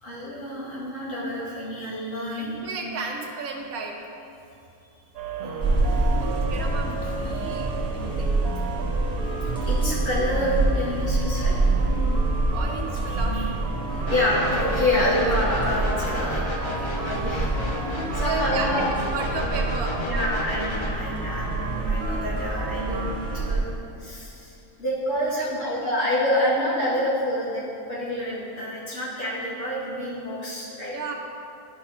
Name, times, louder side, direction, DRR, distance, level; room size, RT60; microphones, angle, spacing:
voice 1, 0.0-2.6 4.8-4.9 5.4-5.8 9.6-11.7 13.9-17.9 18.1-18.9 20.1-23.7 24.0-30.9, left 1 dB, 60° left, -9 dB, 2.4 m, -28 dB
voice 2, 2.4-4.0 6.2-8.3 11.8-12.0 12.5-13.7 18.2-20.1 25.3-26.1 30.9-31.1, right 4 dB, 85° right, 1 dB, 1.3 m, -34 dB
sound 1, 5.1-23.5, right 4 dB, 60° right, 0.7 m, -34 dB
sound 2, 5.6-23.6, right 2 dB, 5° left, 1.0 m, -27 dB
sound 3, 14.1-20.9, left 2 dB, 45° left, 0.3 m, -33 dB
11.0 x 5.8 x 2.8 m, 2.7 s
omnidirectional pair, 1.5 m